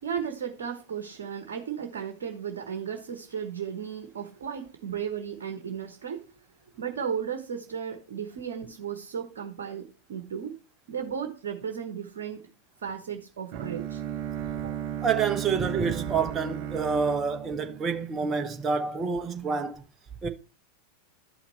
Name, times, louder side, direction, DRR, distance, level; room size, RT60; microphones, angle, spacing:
voice 1, 0.0-6.3 6.7-10.6 10.9-12.4 12.8-14.0 14.6-14.8, right 7 dB, 60° right, 1.2 m, -35 dB
Bowed string instrument, 13.5-18.5, right 10 dB, 45° right, 0.9 m, -35 dB
voice 2, 15.0-19.8 20.2-20.3, right 5 dB, 20° right, 1.1 m, -28 dB
12.0 x 5.8 x 4.2 m
figure-of-eight pair, 90°, 0 cm